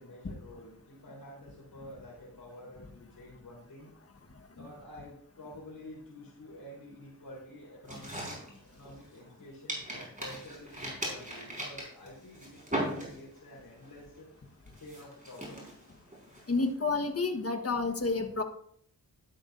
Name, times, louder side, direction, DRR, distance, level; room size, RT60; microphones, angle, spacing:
voice 1, 0.0-3.9 4.6-14.3 14.8-15.8, left 1 dB, 75° left, -8 dB, 3.7 m, -49 dB
sound 1, 7.8-9.3 9.7-13.5 13.8-14.2 14.7-17.0, right 1 dB, 20° right, 4.9 m, -39 dB
voice 2, 16.5-18.4, left 3 dB, 40° left, 5 dB, 1.4 m, -29 dB
12.0 x 11.5 x 2.6 m, 0.67 s
wide cardioid pair, 80°, 36 cm